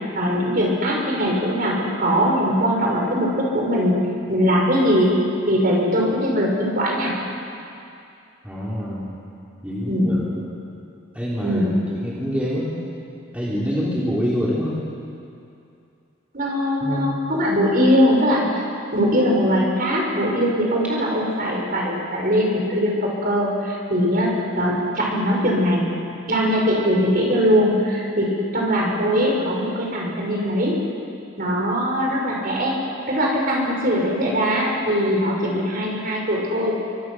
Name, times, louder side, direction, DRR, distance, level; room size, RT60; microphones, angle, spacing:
voice 1, 0.1-4.0 4.3-5.1 5.5-7.1 9.9-10.2 11.4-11.8 16.3-18.6 18.9-24.3 24.6-25.9 26.3-28.3 28.5-30.7 31.4-32.7 33.1-36.7, equal, 40° right, -2 dB, 5.3 m, -21 dB
voice 2, 8.4-9.1 9.6-10.4 11.1-12.9 13.3-14.8 16.8-17.1, equal, 5° right, -7 dB, 3.7 m, -26 dB
28.5 x 24.5 x 6.2 m, 2.6 s
head